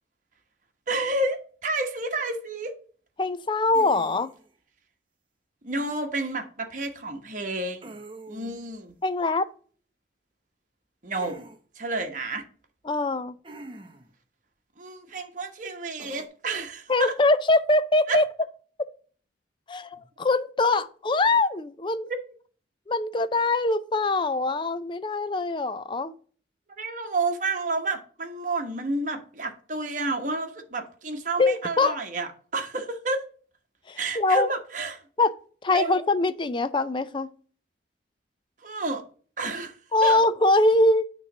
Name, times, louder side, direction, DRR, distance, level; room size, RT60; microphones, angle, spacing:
voice 1, 0.9-2.7 5.6-7.9 8.3-8.9 11.0-11.4 11.7-12.4 14.8-17.1 18.1-18.2 22.1-22.2 26.8-33.3 33.9-35.0 35.7-35.9 38.6-39.0 39.4-39.8 40.0-40.2, right 2 dB, 45° right, 1.1 m, -30 dB
voice 2, 3.2-4.3 9.0-9.5 12.9-13.4 16.9-18.2 19.7-22.1 22.9-26.1 31.4-31.9 33.9-34.5 35.2-35.3 35.6-37.3 39.9-41.0, left 2 dB, 25° left, 0.4 m, -23 dB
sound 1, 3.7-4.5 7.8-8.6 11.2-11.6 13.4-14.1 16.0-16.3, right 2 dB, 30° right, 0.8 m, -44 dB
9.0 x 3.2 x 6.0 m
head